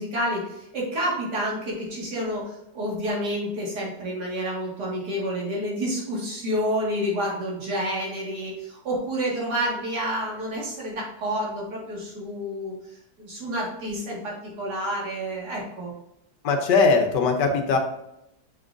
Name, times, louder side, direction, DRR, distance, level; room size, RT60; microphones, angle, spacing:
voice 1, 0.0-12.7 13.2-15.9, equal, 60° right, -4 dB, 2.6 m, -29 dB
voice 2, 16.4-17.8, left 4 dB, 70° left, 4 dB, 1.5 m, -20 dB
6.8 x 6.2 x 2.6 m, 0.83 s
omnidirectional pair, 2.0 m